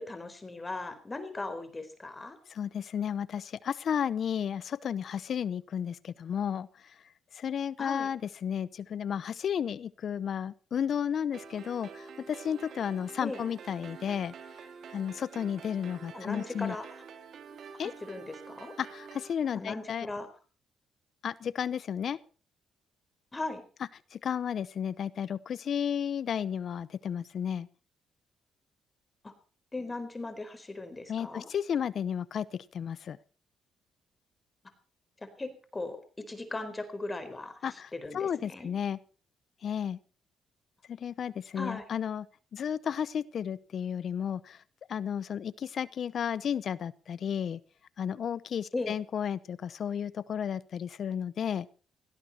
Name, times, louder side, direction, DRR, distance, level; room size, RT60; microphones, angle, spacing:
voice 1, 0.0-2.4 7.8-8.1 13.2-13.4 16.1-17.0 17.8-18.7 19.5-20.3 23.3-23.6 29.2-29.3 29.7-31.5 35.2-38.7 41.6-41.9 48.7-49.0, left 2 dB, 20° left, 9 dB, 4.2 m, -38 dB
voice 2, 2.5-6.7 7.3-14.3 14.9-16.7 17.8-17.9 18.8-20.1 21.2-22.2 24.1-27.7 31.1-33.2 37.6-39.0 39.6-40.0 40.9-42.3 42.5-44.6 44.9-47.6 48.0-51.7, left 8 dB, 60° left, 19 dB, 0.8 m, -33 dB
sound 1, 11.3-19.3, right 5 dB, 65° right, 2.9 m, -47 dB
18.0 x 16.5 x 4.3 m, 0.39 s
cardioid pair, 90°, 0 cm